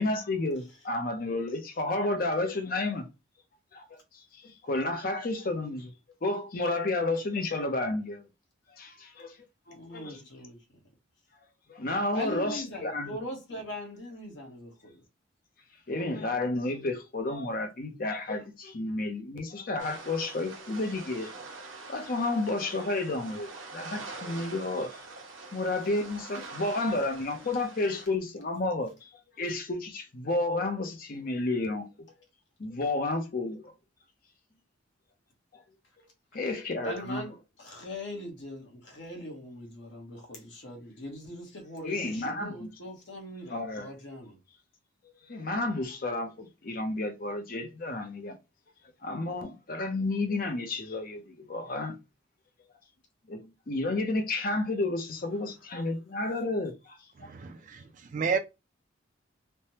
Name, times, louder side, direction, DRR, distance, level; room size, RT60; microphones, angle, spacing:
voice 1, 0.0-3.1 3.7-5.9 6.2-8.2 8.7-9.4 9.7-10.2 11.7-13.1 15.9-21.3 21.9-25.0 25.5-29.1 29.4-31.9 32.6-33.7 35.5-35.6 36.3-37.2 41.8-42.7 43.5-43.9 45.2-48.4 49.0-52.0 53.3-57.3, left 2 dB, 45° left, 0.6 m, -31 dB
voice 2, 9.7-10.8 12.1-15.0 18.4-18.5 36.3-36.6 36.8-44.4, equal, 60° left, 1.0 m, -41 dB
sound 1, 19.8-28.1, right 3 dB, 70° right, 0.8 m, -44 dB
voice 3, 57.2-57.8 58.1-58.4, right 5 dB, 40° right, 0.3 m, -30 dB
3.3 x 2.1 x 2.8 m
head